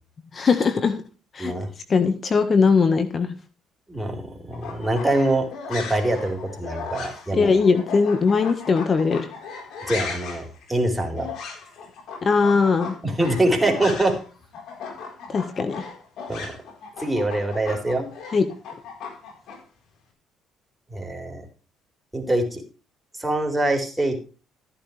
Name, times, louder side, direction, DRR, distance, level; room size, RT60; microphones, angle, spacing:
voice 1, 0.3-1.0 1.3-1.5 1.9-3.3 7.3-9.3 12.2-13.0 15.3-15.9 18.3-18.5, left 5 dB, 40° left, 9 dB, 1.5 m, -20 dB
voice 2, 3.9-7.5 9.8-11.3 13.0-14.2 16.3-16.6 17.0-18.1 20.9-21.4 22.1-22.6 23.2-24.2, right 1 dB, 10° right, 3 dB, 4.5 m, -24 dB
sound 1, 4.5-14.3 14.5-19.6, left 5 dB, 70° left, 4.4 m, -37 dB
14.5 x 10.5 x 3.4 m, 0.35 s
supercardioid pair, 70°, 0 cm